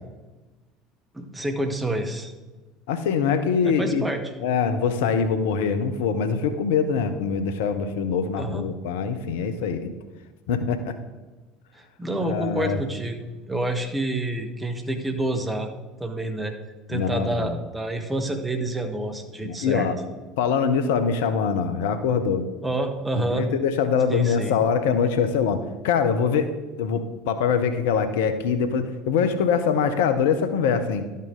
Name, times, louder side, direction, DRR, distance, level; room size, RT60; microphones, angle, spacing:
voice 1, 1.1-2.3 3.6-4.2 8.4-8.7 11.7-15.7 16.0-16.5 16.9-19.9 22.6-23.5 24.1-24.5, right 1 dB, 10° right, 5 dB, 1.2 m, -28 dB
voice 2, 2.9-4.0 4.4-9.9 10.5-11.0 12.2-12.8 16.9-17.5 19.4-20.0 20.4-22.5 23.1-26.5 26.8-31.1, left 6 dB, 65° left, 9 dB, 0.6 m, -23 dB
12.0 x 5.5 x 3.7 m, 1.2 s
figure-of-eight pair, 65°, 0 cm